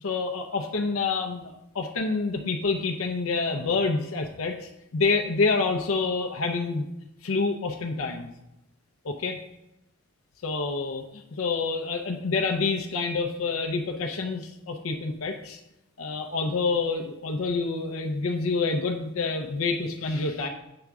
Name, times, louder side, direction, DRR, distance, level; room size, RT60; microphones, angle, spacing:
voice 1, 0.0-6.9 7.2-8.3 9.0-9.4 10.4-15.6 16.0-20.5, left 4 dB, 65° left, 4 dB, 0.6 m, -27 dB
7.8 x 3.5 x 6.0 m, 0.91 s
head